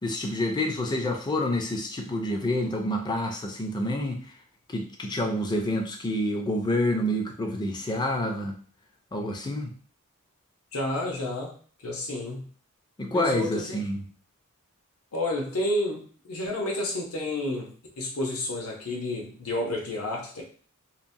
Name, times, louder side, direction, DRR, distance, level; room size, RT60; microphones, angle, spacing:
voice 1, 0.0-4.2 4.7-8.6 9.1-9.7 13.0-14.0, left 1 dB, 20° left, 3 dB, 0.4 m, -28 dB
voice 2, 10.7-11.6 11.8-12.5 13.1-13.8 15.1-20.4, left 1 dB, 70° left, 0 dB, 0.7 m, -30 dB
2.8 x 2.0 x 2.6 m, 0.43 s
head